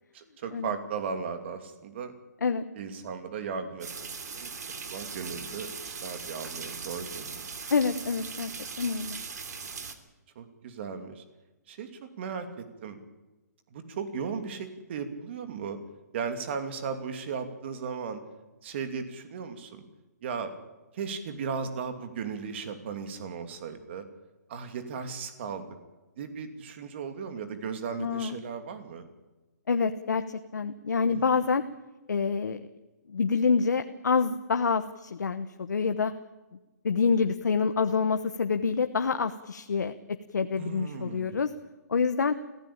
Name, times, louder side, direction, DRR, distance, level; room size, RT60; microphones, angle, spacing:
voice 1, 0.1-2.1 2.7-4.5 4.9-7.5 10.3-11.2 11.7-13.0 13.7-15.8 16.1-18.2 18.6-19.8 20.2-20.5 20.9-24.1 24.5-25.8 26.2-29.1 31.1-31.4 40.6-41.4, right 6 dB, 40° right, 7 dB, 2.7 m, -36 dB
sound 1, 3.8-9.9, right 5 dB, 75° right, 3.0 m, -39 dB
voice 2, 7.7-8.5 8.8-9.2 28.0-28.4 29.7-31.6 32.1-32.6 33.1-36.1 36.8-40.0 40.3-41.5 41.9-42.3, left 5 dB, 90° left, 8 dB, 1.1 m, -27 dB
23.5 x 16.0 x 8.8 m, 1.1 s
hypercardioid pair, 160°, 9 cm